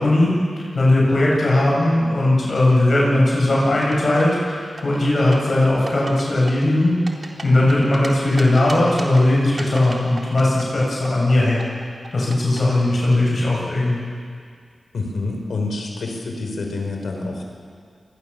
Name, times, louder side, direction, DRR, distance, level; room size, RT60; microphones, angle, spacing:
voice 1, 0.0-6.9 7.4-11.7 12.1-14.0, left 1 dB, 60° left, -4 dB, 7.8 m, -18 dB
sound 1, 3.7-4.4 4.8-5.5 5.9-6.2 6.5-8.1 8.4-9.2 9.6-11.3 11.6-12.6, right 3 dB, 50° right, 3.6 m, -35 dB
voice 2, 14.9-17.4, left 3 dB, 85° left, 2 dB, 5.1 m, -27 dB
28.0 x 22.0 x 7.2 m, 2.1 s
cardioid pair, 60°, 0 cm